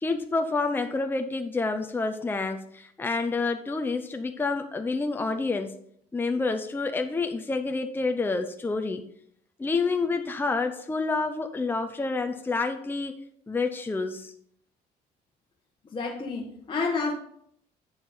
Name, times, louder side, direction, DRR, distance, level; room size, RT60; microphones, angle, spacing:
voice 1, 0.0-5.8 6.1-9.0 9.6-13.1 13.5-14.3, left 3 dB, 10° left, 6 dB, 0.7 m, -28 dB
voice 2, 15.9-17.1, left 4 dB, 30° left, -2 dB, 1.3 m, -29 dB
8.0 x 6.7 x 5.0 m, 0.67 s
cardioid pair, 110°, 17 cm